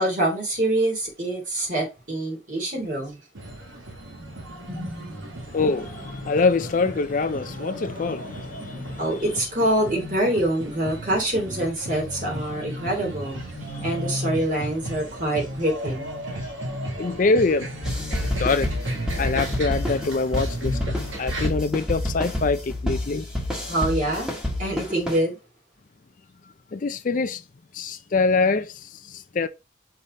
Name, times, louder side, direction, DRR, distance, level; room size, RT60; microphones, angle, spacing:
voice 1, 0.0-3.2 4.1-5.4 9.0-13.4 13.8-16.1 23.7-24.3 24.6-25.4, right 1 dB, 40° right, 2.7 m, -25 dB
sound 1, 3.4-21.5, right 1 dB, 85° right, 1.8 m, -34 dB
voice 2, 5.5-9.2 12.5-12.6 13.7-14.2 16.4-16.5 16.9-17.7 18.4-18.7 19.2-20.9 21.2-23.3 26.7-27.4 27.7-29.5, left 3 dB, 40° left, 0.4 m, -25 dB
sound 2, 17.8-25.2, left 1 dB, 5° right, 1.4 m, -28 dB
5.6 x 3.4 x 5.0 m
head